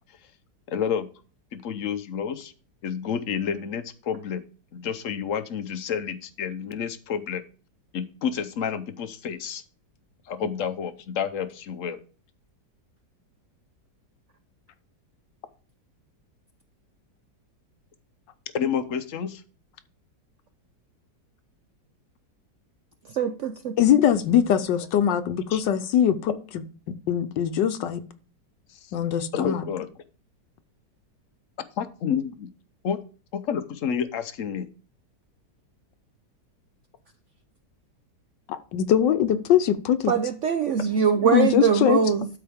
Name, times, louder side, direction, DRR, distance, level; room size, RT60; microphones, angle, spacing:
voice 1, 0.7-1.1 1.5-2.5 2.8-4.4 4.7-7.4 7.9-9.6 10.3-12.0 18.5-19.4 25.5-25.6 28.8-28.9 29.3-29.9 31.8-32.5 32.8-33.0 33.3-34.7, left 7 dB, 60° left, 12 dB, 0.9 m, -29 dB
voice 2, 23.1-23.7 40.1-42.3, right 7 dB, 75° right, 9 dB, 0.6 m, -22 dB
voice 3, 23.8-26.3 27.1-28.0 28.9-29.6 38.7-40.1 41.3-42.0, left 9 dB, 80° left, 10 dB, 1.4 m, -21 dB
12.5 x 4.7 x 3.5 m, 0.37 s
omnidirectional pair, 1.9 m